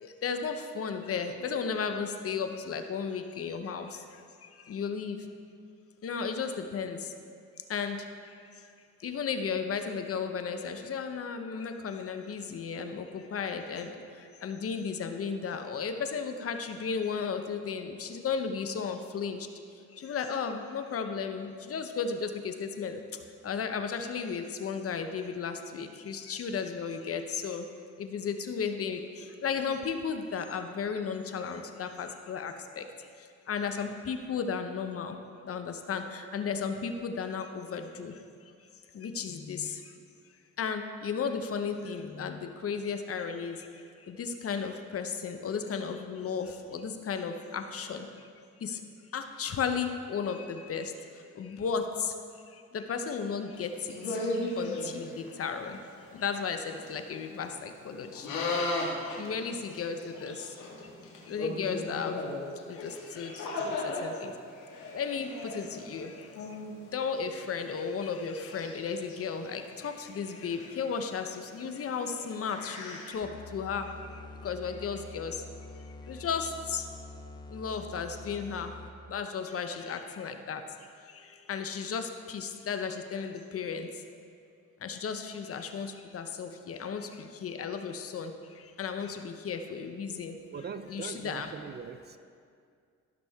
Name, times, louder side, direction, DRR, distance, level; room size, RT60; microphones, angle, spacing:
voice 1, 0.0-4.0 4.7-5.2 6.0-7.0 7.7-8.0 9.0-14.0 14.4-19.5 20.0-23.0 23.4-27.6 28.0-29.0 29.4-32.8 33.5-35.2 35.5-38.2 38.9-39.8 40.6-43.6 44.1-48.1 48.6-48.8 49.1-50.9 51.4-52.1 52.7-53.7 54.6-55.8 56.1-58.3 59.2-60.4 61.3-62.2 62.7-63.3 63.6-64.3 64.9-66.1 66.9-73.9 74.4-75.3 76.1-76.8 77.5-78.7 79.1-80.6 81.5-83.9 84.8-88.3 88.8-90.4 90.9-91.5, left 6 dB, 50° left, 7 dB, 0.8 m, -34 dB
sound 1, 53.5-55.3 55.8-55.9 56.1-56.4 56.8-56.9 57.2-57.5 58.1-64.0 64.5-66.8 67.3-67.4 67.9-69.2 69.6-73.1, left 2 dB, 90° left, 1.9 m, -37 dB
sound 2, 73.2-79.1, left 3 dB, 15° left, 0.7 m, -46 dB
voice 2, 90.5-92.2, right 6 dB, 35° right, 10 dB, 0.4 m, -41 dB
14.0 x 6.1 x 3.6 m, 2.2 s
cardioid pair, 90°, 30 cm